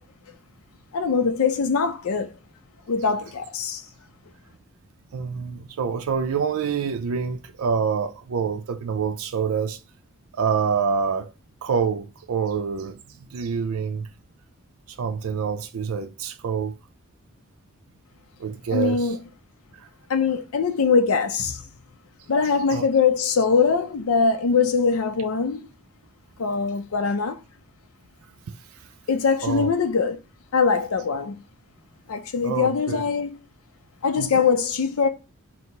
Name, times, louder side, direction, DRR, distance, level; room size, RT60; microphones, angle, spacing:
voice 1, 0.9-2.3 2.9-3.8 18.7-19.2 20.1-21.6 22.3-25.7 26.4-27.4 29.1-30.2 30.5-31.4 32.1-33.3 34.0-35.1, left 5 dB, 80° left, 0.4 m, -22 dB
voice 2, 5.1-9.8 10.4-11.3 11.6-14.1 14.9-16.7 18.4-19.2 19.8-19.9 22.7-22.8 28.7-28.9 29.4-29.7 32.4-33.0 34.2-34.4, right 6 dB, 80° right, 0.4 m, -26 dB
4.4 x 2.0 x 3.7 m
head